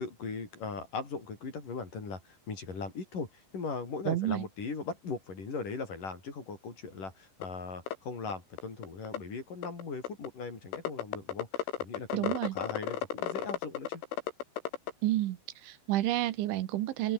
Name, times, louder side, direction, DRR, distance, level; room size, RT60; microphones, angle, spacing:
voice 1, 0.0-14.0, left 4 dB, 45° left, 6.9 m, -39 dB
voice 2, 4.1-4.5 12.1-12.6 15.0-15.4 15.6-17.1, right 15 dB, 80° right, 3.7 m, -30 dB
sound 1, 7.4-7.5 7.9-8.0 8.3-8.4 8.6-9.2 9.6-10.3 10.7-14.9, left 10 dB, 85° left, 5.0 m, -33 dB
open air
omnidirectional pair, 5.4 m